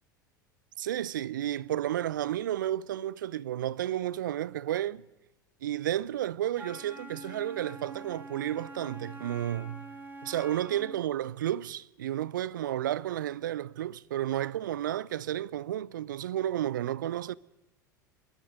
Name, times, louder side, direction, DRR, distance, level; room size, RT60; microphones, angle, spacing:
voice 1, 0.8-5.0 5.6-9.8 10.2-17.3, right 12 dB, 75° right, 0.6 m, -32 dB
Wind instrument woodwind instrument, 6.5-11.1, right 1 dB, 20° right, 2.8 m, -45 dB
23.5 x 21.5 x 5.3 m
figure-of-eight pair, 80°, 11 cm